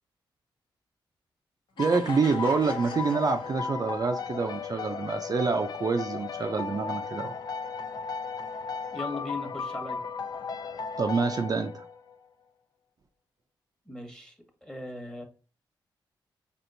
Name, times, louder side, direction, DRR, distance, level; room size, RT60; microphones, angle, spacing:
sound 1, 1.8-4.1, left 3 dB, 65° left, 1.1 m, -44 dB
sound 2, 1.8-12.2, left 5 dB, 50° left, 0.4 m, -35 dB
voice 1, 1.8-7.4 11.0-11.9, right 4 dB, 45° right, 0.4 m, -27 dB
voice 2, 8.9-10.0 13.9-15.3, left 2 dB, 5° left, 1.1 m, -38 dB
4.4 x 3.0 x 2.6 m
cardioid pair, 60°, 9 cm